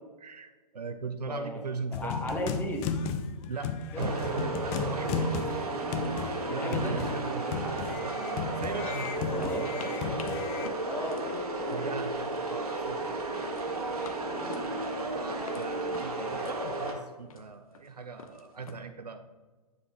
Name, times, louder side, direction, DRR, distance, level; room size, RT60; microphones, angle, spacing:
voice 1, 0.2-2.7 3.5-5.4 6.1-8.2 8.6-10.0 11.7-13.2 15.0-19.3, right 4 dB, 90° right, 8 dB, 0.5 m, -39 dB
voice 2, 1.3-1.6 2.0-2.8 3.9-4.2 6.4-7.1 9.3-9.7 10.8-12.0 14.2-14.6, left 1 dB, 10° left, 1 dB, 0.9 m, -36 dB
sound 1, 1.9-10.7, left 5 dB, 25° left, 0.3 m, -35 dB
sound 2, 4.0-16.9, right 2 dB, 75° right, 1.2 m, -33 dB
sound 3, 6.0-6.9 7.1-8.6 9.0-12.5 12.8-13.2 13.6-15.7 15.9-18.7, left 5 dB, 65° left, 0.8 m, -49 dB
9.4 x 5.6 x 2.3 m, 1.3 s
figure-of-eight pair, 120°, 20 cm